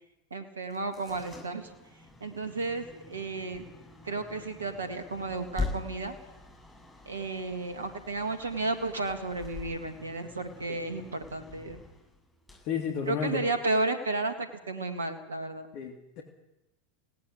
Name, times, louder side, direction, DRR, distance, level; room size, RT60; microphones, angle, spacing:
voice 1, 0.3-1.7 2.2-3.6 4.0-6.2 7.1-11.8 13.1-15.7, right 3 dB, 80° right, 8 dB, 2.1 m, -33 dB
sound 1, 0.6-13.6, left 3 dB, 10° left, 7.7 m, -43 dB
voice 2, 12.6-13.4 15.7-16.2, left 7 dB, 50° left, 2 dB, 3.0 m, -32 dB
18.5 x 18.0 x 8.1 m, 0.93 s
figure-of-eight pair, 90°, 0 cm